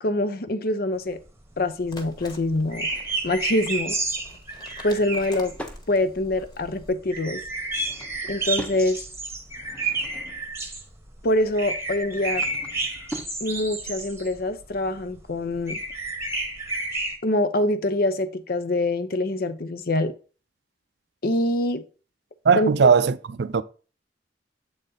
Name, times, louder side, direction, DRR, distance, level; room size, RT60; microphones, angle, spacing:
voice 1, 0.0-1.2 1.6-2.9 3.2-4.0 4.8-5.5 5.9-7.4 8.2-9.0 11.2-12.5 13.4-15.8 17.2-20.1 21.2-21.8 22.6-22.7, left 1 dB, 55° left, 0.7 m, -25 dB
sound 1, 1.1-17.2, right 3 dB, 15° right, 1.0 m, -31 dB
sound 2, 1.8-6.9, left 1 dB, 25° left, 1.3 m, -46 dB
Drawer open or close / Wood, 4.9-5.8 7.5-8.9 9.4-10.6 11.9-13.4, right 1 dB, 5° left, 0.7 m, -41 dB
voice 2, 22.5-23.6, right 6 dB, 65° right, 0.4 m, -19 dB
7.9 x 4.1 x 3.8 m
head